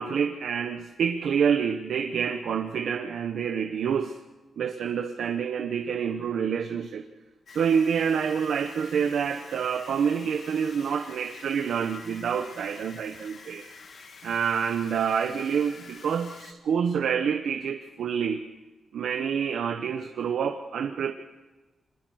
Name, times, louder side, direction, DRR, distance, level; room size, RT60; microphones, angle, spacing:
voice 1, 0.0-4.1 4.6-7.0 7.5-13.6 14.2-18.4 18.9-21.1, right 7 dB, 75° right, 6 dB, 1.1 m, -27 dB
sound 1, 7.5-16.5, left 4 dB, 50° left, 1.8 m, -48 dB
26.0 x 21.0 x 6.4 m, 1.2 s
wide cardioid pair, 175°, 0 cm